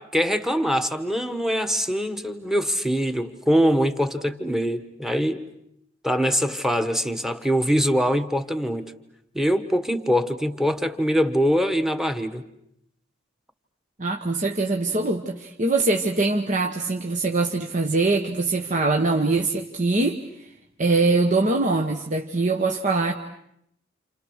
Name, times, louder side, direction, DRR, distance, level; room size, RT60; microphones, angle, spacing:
voice 1, 0.0-5.4 6.0-8.9 9.3-12.4, equal, ahead, 9 dB, 1.3 m, -23 dB
voice 2, 14.0-20.5 20.8-23.1, right 3 dB, 40° right, 3 dB, 1.2 m, -23 dB
29.5 x 28.5 x 6.5 m, 0.76 s
head